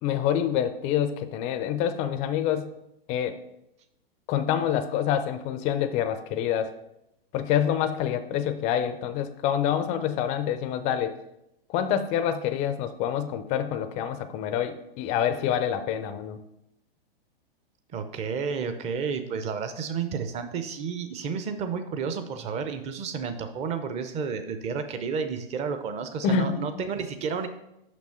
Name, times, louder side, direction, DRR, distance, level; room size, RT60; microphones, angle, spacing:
voice 1, 0.0-2.7 3.1-3.4 4.3-6.7 7.3-11.2 11.7-16.4 26.2-26.6, left 9 dB, 25° left, 11 dB, 0.4 m, -27 dB
voice 2, 17.9-27.5, right 6 dB, 20° right, 9 dB, 0.6 m, -31 dB
6.1 x 5.7 x 4.3 m, 0.84 s
hypercardioid pair, 120°, 30 cm